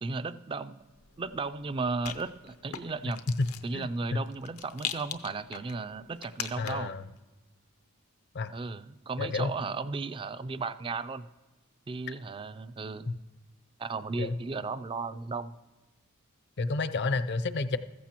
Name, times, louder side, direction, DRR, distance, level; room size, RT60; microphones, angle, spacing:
voice 1, 0.0-0.7 1.2-3.2 3.6-7.0 8.5-11.3 11.9-13.1 13.8-15.5, right 4 dB, 25° right, 14 dB, 0.3 m, -35 dB
Rattle, 0.9-7.0, left 9 dB, 85° left, 0.7 m, -42 dB
voice 2, 3.7-4.2 6.6-7.0 8.3-8.5 9.2-9.5 14.2-14.3 16.6-17.8, left 3 dB, 50° left, 12 dB, 0.5 m, -30 dB
14.5 x 14.5 x 2.9 m, 1.2 s
head